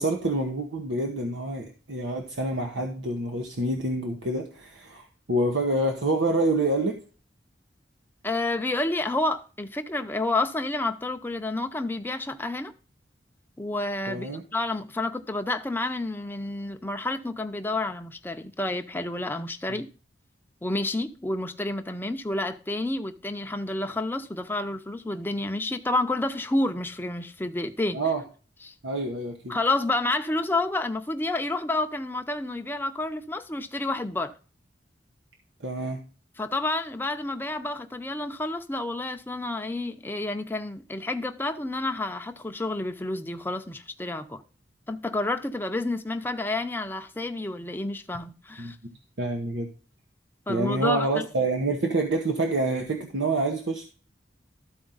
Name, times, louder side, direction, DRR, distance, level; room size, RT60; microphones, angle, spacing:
voice 1, 0.0-7.0 14.1-14.4 19.7-19.8 27.9-28.2 28.8-29.5 35.6-36.0 48.6-48.7 49.2-49.7 50.5-53.9, right 2 dB, 90° right, 1.2 m, -27 dB
voice 2, 8.2-12.7 13.6-19.9 20.6-28.0 28.6-28.7 29.5-34.3 36.4-44.4 44.9-48.8 50.5-51.2, left 2 dB, 10° left, 0.6 m, -29 dB
13.0 x 4.4 x 3.9 m
head